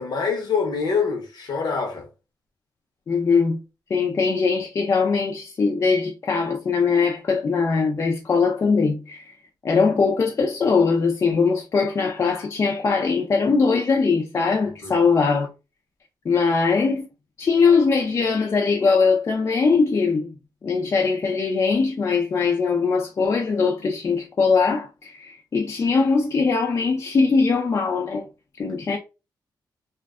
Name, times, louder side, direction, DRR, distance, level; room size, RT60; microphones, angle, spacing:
voice 1, 0.0-2.1 14.8-15.0, left 5 dB, 65° left, 0.8 m, -25 dB
voice 2, 3.1-3.6 3.9-9.3 9.6-15.5 16.2-17.1 17.4-20.3 20.6-28.3 28.6-29.0, left 4 dB, 40° left, 0.4 m, -21 dB
2.5 x 2.2 x 2.3 m
cardioid pair, 105°, 8 cm